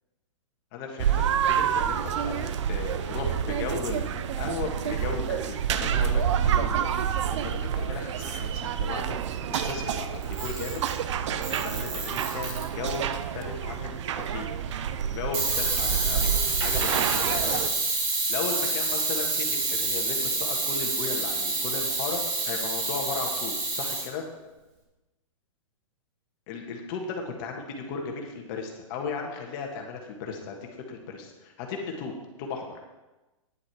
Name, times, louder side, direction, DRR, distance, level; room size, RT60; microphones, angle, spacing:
voice 1, 0.7-9.2 9.5-10.8 11.3-14.5 15.0-16.3 16.6-22.2 22.4-24.3 26.5-32.1 32.4-32.8, left 5 dB, 40° left, 1 dB, 1.6 m, -36 dB
sound 1, 1.0-17.7, right 9 dB, 60° right, 0.7 m, -28 dB
Camera, 10.2-11.0 11.4-13.0 15.3-24.1, right 3 dB, 40° right, 3.0 m, -28 dB
9.8 x 8.4 x 4.8 m, 1.1 s
hypercardioid pair, 140°, 17 cm